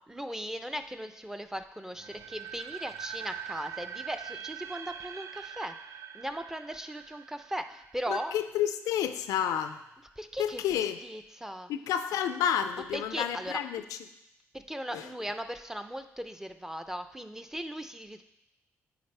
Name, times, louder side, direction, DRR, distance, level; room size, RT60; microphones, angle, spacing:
voice 1, 0.1-5.7 6.1-8.3 10.2-11.7 12.9-13.6 14.5-18.2, equal, 10° right, 9 dB, 0.5 m, -38 dB
sound 1, 1.9-8.8, right 9 dB, 55° right, 0.4 m, -43 dB
voice 2, 8.1-9.8 10.4-11.0 11.7-13.8 14.9-15.1, left 9 dB, 85° left, 10 dB, 0.3 m, -30 dB
9.4 x 3.7 x 3.3 m, 0.87 s
supercardioid pair, 60°, 6 cm